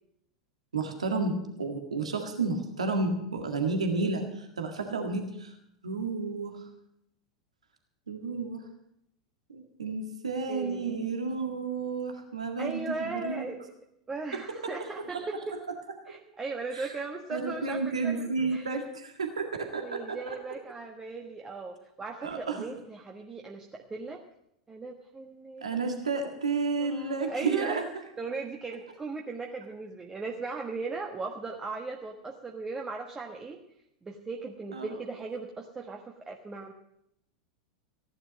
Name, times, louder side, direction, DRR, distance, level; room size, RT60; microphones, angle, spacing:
voice 1, 0.7-5.6 5.8-6.6 8.1-8.6 9.5-13.5 15.1-15.2 16.7-16.9 17.3-20.4 22.2-22.6 25.6-27.8 34.7-34.9, right 4 dB, 80° right, 4 dB, 1.9 m, -31 dB
voice 2, 10.5-11.1 12.6-13.6 14.1-15.6 16.1-18.8 19.7-24.2 24.7-25.9 26.8-27.8 28.2-33.6 34.0-36.7, right 3 dB, 15° right, 1 dB, 1.3 m, -38 dB
15.5 x 11.0 x 6.4 m, 0.79 s
figure-of-eight pair, 90°, 3 cm